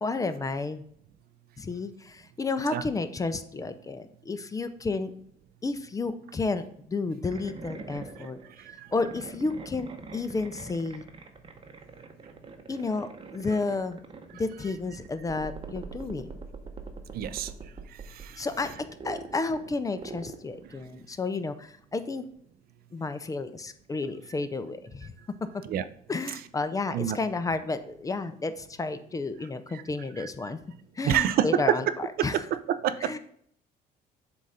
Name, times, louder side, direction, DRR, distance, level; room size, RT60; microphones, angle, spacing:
voice 1, 0.0-0.8 1.6-5.1 5.6-8.4 8.9-11.0 12.7-14.0 14.3-16.3 18.4-18.7 19.0-22.2 22.9-25.1 26.1-30.6 31.0-32.5 33.0-33.2, left 3 dB, 20° left, 11 dB, 0.5 m, -31 dB
sound 1, 7.2-21.0, right 4 dB, 30° right, 0.8 m, -44 dB
voice 2, 17.1-17.5 18.2-18.3 25.7-25.8 26.9-27.2 31.0-31.8 32.2-32.3 32.7-33.2, right 10 dB, 65° right, 13 dB, 0.5 m, -26 dB
7.5 x 2.5 x 5.4 m, 0.65 s
cardioid pair, 110°, 17 cm